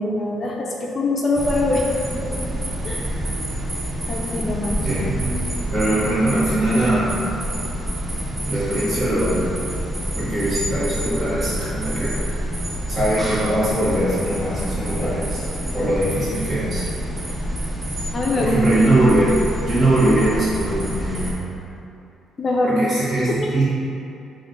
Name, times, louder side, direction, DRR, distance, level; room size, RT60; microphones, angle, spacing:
voice 1, 0.0-1.9 2.8-3.1 4.1-4.8 18.1-18.6 22.4-22.8 23.3-23.5, left 2 dB, 35° left, -2 dB, 0.4 m, -23 dB
sound 1, 1.3-21.3, right 1 dB, 10° right, 0.6 m, -27 dB
voice 2, 4.8-5.3 5.7-7.2 8.5-9.5 10.1-12.2 12.9-15.4 15.7-16.8 18.4-19.3 19.6-21.4 22.6-23.6, right 1 dB, 40° right, -10 dB, 1.3 m, -21 dB
3.1 x 2.5 x 3.9 m, 2.7 s
cardioid pair, 105°, 0 cm